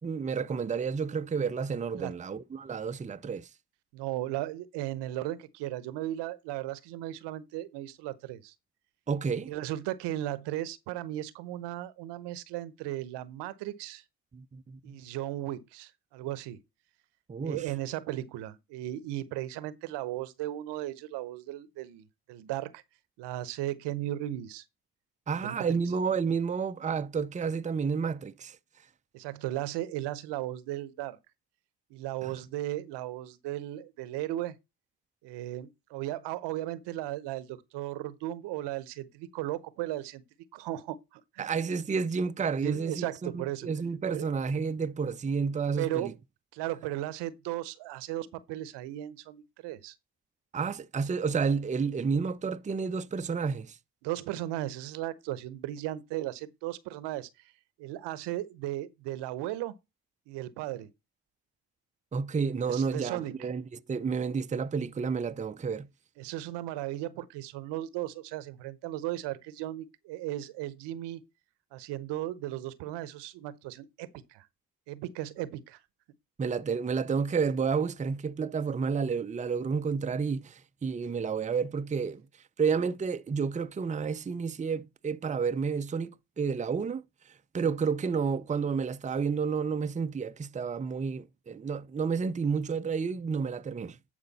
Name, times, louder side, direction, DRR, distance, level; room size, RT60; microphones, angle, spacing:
voice 1, 0.0-3.5 9.1-9.5 14.3-15.0 17.3-17.7 25.3-28.6 32.2-32.4 41.4-46.1 50.5-53.8 62.1-65.9 76.4-82.3 82.6-94.0, right 5 dB, 20° right, 0.6 m, -30 dB
voice 2, 3.9-8.5 9.5-14.0 14.8-16.6 17.4-22.8 23.2-24.6 25.4-25.8 29.1-31.2 31.9-34.6 35.2-40.2 40.5-41.5 42.6-43.7 44.1-44.3 45.8-46.1 46.5-49.9 54.0-57.3 57.8-59.7 60.3-60.9 62.7-63.3 66.2-71.2 71.7-74.4 74.9-75.8, right 14 dB, 80° right, 0.9 m, -36 dB
10.0 x 5.1 x 4.1 m
supercardioid pair, 55°, 41 cm